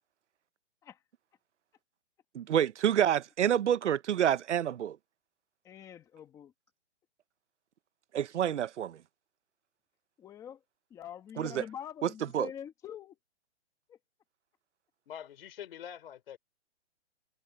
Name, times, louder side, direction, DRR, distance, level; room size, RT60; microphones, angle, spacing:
voice 1, 2.3-5.0 8.1-9.0 11.4-11.6 12.3-12.5, right 10 dB, 75° right, 0.9 m, -28 dB
voice 2, 5.6-6.5 10.2-10.6 10.9-13.2 13.9-14.0, left 9 dB, 10° left, 1.4 m, -45 dB
voice 3, 15.1-16.4, left 9 dB, 55° left, 3.5 m, -45 dB
hypercardioid pair, 165°, 35 cm